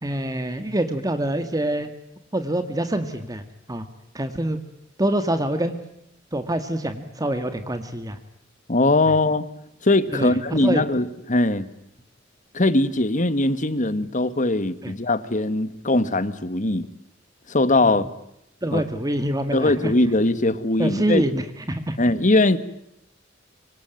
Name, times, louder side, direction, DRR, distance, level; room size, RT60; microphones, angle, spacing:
voice 1, 0.0-1.9 2.3-3.4 3.7-3.9 4.1-4.6 5.0-5.8 6.3-8.2 9.1-9.2 10.1-10.8 14.8-14.9 17.8-17.9 18.6-19.9 20.8-22.0, right 1 dB, 20° right, 9 dB, 1.8 m, -25 dB
voice 2, 8.7-9.5 9.8-11.7 12.5-16.9 17.5-18.1 18.7-18.8 19.5-21.2 22.0-22.6, left 2 dB, 40° left, 14 dB, 1.8 m, -21 dB
25.5 x 25.5 x 9.1 m, 0.80 s
head